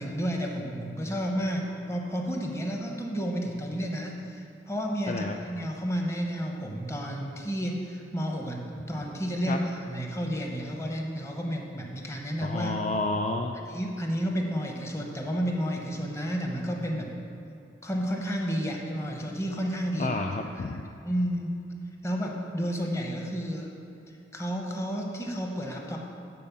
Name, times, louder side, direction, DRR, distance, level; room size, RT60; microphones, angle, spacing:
voice 1, 0.0-12.7 13.7-17.2 17.8-20.2 20.7-20.8 21.0-21.6 22.0-23.7 24.3-26.0, equal, 15° left, 1 dB, 0.9 m, -31 dB
voice 2, 12.4-13.6 20.0-20.9, left 2 dB, 40° left, 3 dB, 0.3 m, -30 dB
9.4 x 4.3 x 7.2 m, 2.6 s
head